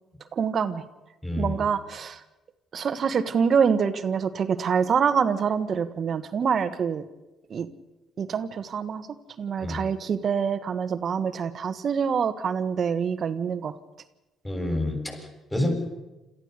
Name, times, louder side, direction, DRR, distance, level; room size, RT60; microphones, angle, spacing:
voice 1, 0.3-0.8 1.4-2.2 2.7-7.0 7.5-7.7 8.2-9.1 9.4-13.7 15.6-15.7, right 6 dB, 55° right, 11 dB, 1.4 m, -25 dB
voice 2, 1.2-1.6 9.6-9.8 14.4-15.7, left 1 dB, 15° left, 3 dB, 7.7 m, -28 dB
27.5 x 14.0 x 6.8 m, 1.0 s
hypercardioid pair, 55°, 0 cm